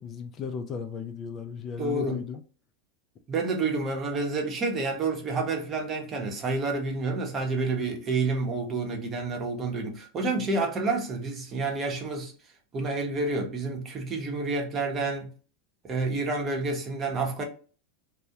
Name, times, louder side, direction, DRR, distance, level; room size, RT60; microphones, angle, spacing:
voice 1, 0.0-2.4, left 6 dB, 35° left, 0.3 m, -35 dB
voice 2, 1.8-2.2 3.3-12.3 12.7-15.3 15.8-17.4, right 3 dB, 30° right, 0.7 m, -29 dB
2.2 x 2.0 x 2.8 m
hypercardioid pair, 105°, 0 cm